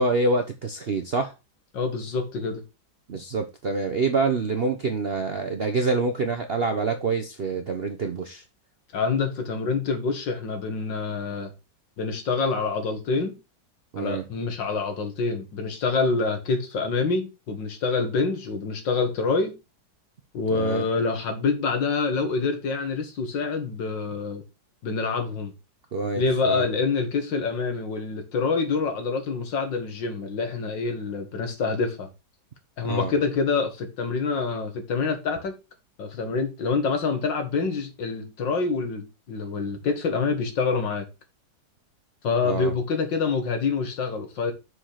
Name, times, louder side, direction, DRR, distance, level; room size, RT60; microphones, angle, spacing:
voice 1, 0.0-1.3 3.1-8.4 13.9-14.2 20.5-20.8 25.9-26.7 32.9-33.1 42.4-42.7, right 3 dB, 50° right, 0.7 m, -26 dB
voice 2, 1.7-2.6 8.9-11.5 12.0-13.3 14.0-19.5 20.3-24.4 24.8-25.5 26.2-32.1 32.8-35.5 36.0-41.0 42.2-44.5, left 4 dB, 80° left, 2.3 m, -26 dB
6.4 x 5.0 x 5.7 m
omnidirectional pair, 2.0 m